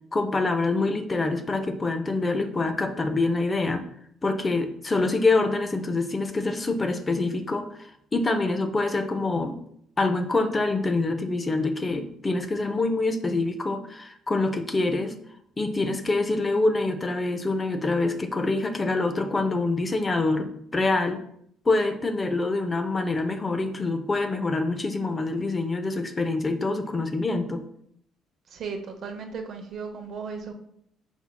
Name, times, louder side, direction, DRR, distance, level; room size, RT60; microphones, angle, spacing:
voice 1, 0.1-3.8 4.2-9.6 10.0-15.1 15.6-21.2 21.7-27.6, left 3 dB, 25° left, 8 dB, 0.4 m, -25 dB
voice 2, 28.5-30.5, right 5 dB, 55° right, 5 dB, 0.7 m, -35 dB
5.5 x 4.3 x 2.2 m, 0.70 s
cardioid pair, 110°, 0 cm